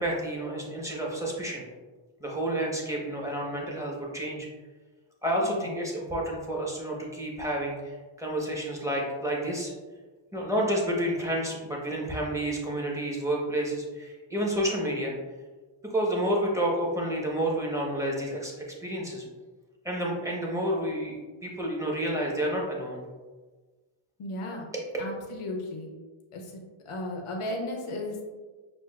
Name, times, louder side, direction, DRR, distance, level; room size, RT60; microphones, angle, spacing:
voice 1, 0.0-1.7 2.2-4.5 5.2-9.7 10.3-15.1 15.9-18.5 18.8-19.2 19.8-23.0 24.7-24.8, right 1 dB, 5° right, -3 dB, 1.1 m, -30 dB
voice 2, 24.2-24.7 25.0-25.9 26.3-26.5 26.9-28.2, left 1 dB, 90° left, 1 dB, 0.8 m, -35 dB
6.0 x 2.5 x 2.4 m, 1.3 s
cardioid pair, 60°, 50 cm